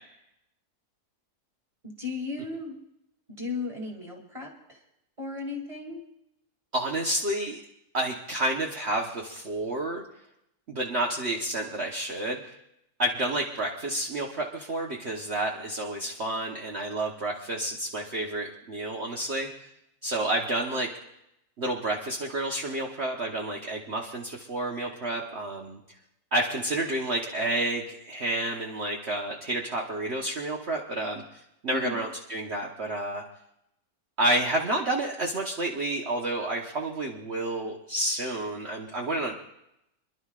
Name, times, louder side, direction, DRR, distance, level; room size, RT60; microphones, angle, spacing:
voice 1, 1.8-2.8 3.3-4.8 5.2-6.0 31.7-32.0, left 4 dB, 20° right, 0 dB, 2.7 m, -35 dB
voice 2, 6.7-7.6 7.9-10.0 10.7-12.6 13.0-19.5 20.0-20.9 21.6-25.8 26.3-33.2 34.2-39.3, right 1 dB, 45° right, -1 dB, 1.3 m, -30 dB
27.0 x 11.5 x 2.5 m, 0.82 s
omnidirectional pair, 1.6 m